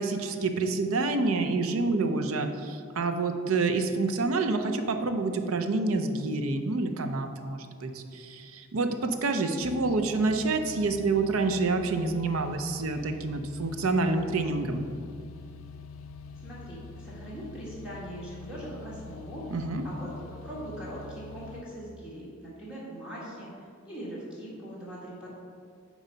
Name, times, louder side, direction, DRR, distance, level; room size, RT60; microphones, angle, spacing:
voice 1, 0.0-14.8 19.5-19.8, right 3 dB, 90° right, 6 dB, 0.6 m, -28 dB
sound 1, 9.6-21.6, left 4 dB, 80° left, 0.4 m, -45 dB
voice 2, 16.3-19.6 19.8-20.1 20.4-25.3, right 1 dB, 5° right, -9 dB, 1.5 m, -41 dB
9.0 x 3.1 x 5.5 m, 2.2 s
head